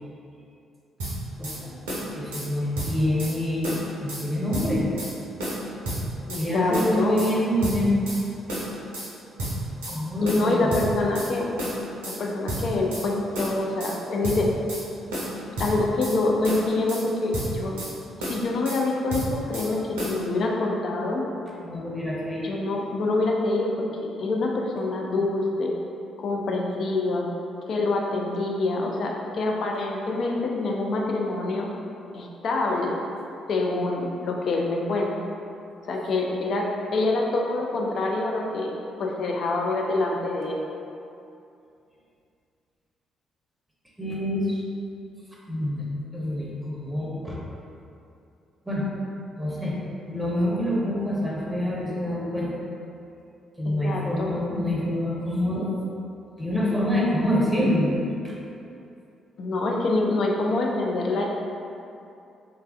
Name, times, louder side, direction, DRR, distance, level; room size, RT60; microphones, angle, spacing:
sound 1, 1.0-1.6 1.9-2.5 2.7-3.3 3.6-4.2 4.5-5.1 5.4-6.4 6.7-7.3 7.6-8.2 8.5-9.1 9.4-10.0 10.2-11.3 11.6-12.2 12.5-13.1 13.3-14.0 14.2-14.8 15.1-16.2 16.4-17.0 17.3-17.9 18.2-18.8 19.1-19.7 20.0-20.2, right 1 dB, 75° right, 0.5 m, -31 dB
voice 1, 1.4-1.7 2.1-4.9 6.3-8.0 9.9-10.8 21.6-22.5 44.0-44.6 45.5-45.8 46.1-47.4 48.6-48.8 49.3-49.8 50.1-52.5 53.6-55.7 56.4-57.9 58.2-58.3, left 1 dB, 10° right, -5 dB, 0.7 m, -26 dB
voice 2, 6.3-7.2 10.2-11.5 12.1-14.5 15.6-17.8 18.2-21.2 22.4-23.7 24.0-25.7 26.2-27.3 27.7-31.7 32.1-33.0 33.5-35.2 35.8-38.7 39.0-40.6 53.7-54.3 59.4-61.2, left 2 dB, 55° left, 0 dB, 0.3 m, -26 dB
3.0 x 2.3 x 2.3 m, 2.6 s
figure-of-eight pair, 40°, 0 cm